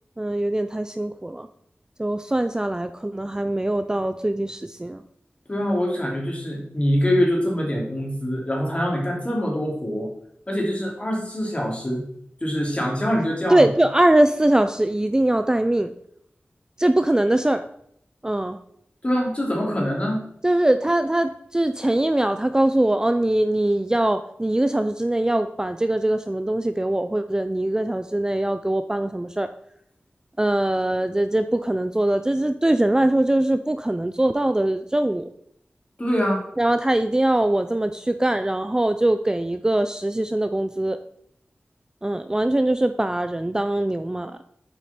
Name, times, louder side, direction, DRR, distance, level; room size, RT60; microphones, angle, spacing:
voice 1, 0.2-1.5 2.0-5.0 13.5-15.9 16.8-17.6 18.2-18.6 20.4-29.5 30.4-35.3 36.6-41.0 42.0-44.4, right 1 dB, 15° right, 9 dB, 0.4 m, -22 dB
voice 2, 5.5-10.1 10.5-12.0 12.4-13.7 19.0-20.2 36.0-36.4, equal, 30° left, -2 dB, 2.6 m, -24 dB
7.5 x 4.9 x 4.2 m, 0.71 s
wide cardioid pair, 50°, 4 cm